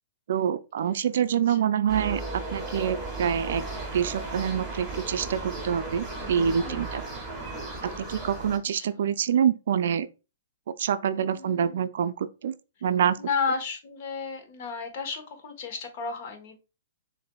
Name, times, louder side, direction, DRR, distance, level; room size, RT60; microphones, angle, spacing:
voice 1, 0.3-3.6 3.9-7.0 7.8-10.1 10.8-12.5 12.8-13.2, right 8 dB, 65° right, 0.4 m, -26 dB
sound 1, 1.9-8.6, right 2 dB, 5° right, 1.9 m, -35 dB
voice 2, 6.6-7.0 8.1-8.3 8.7-9.0 11.1-11.9 13.2-16.6, left 5 dB, 50° left, 1.1 m, -33 dB
6.6 x 2.6 x 2.2 m
hypercardioid pair, 135°, 0 cm